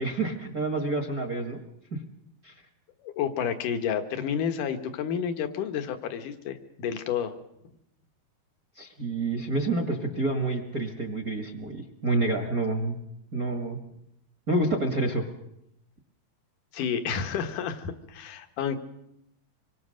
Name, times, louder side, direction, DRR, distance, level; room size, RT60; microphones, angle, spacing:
voice 1, 0.0-1.6 2.4-2.5 8.8-13.0 13.3-13.8 14.5-15.3, right 2 dB, 35° right, 6 dB, 1.7 m, -28 dB
voice 2, 3.0-7.4 16.7-18.8, left 7 dB, 65° left, 8 dB, 2.9 m, -30 dB
26.0 x 23.5 x 6.5 m, 0.82 s
omnidirectional pair, 4.1 m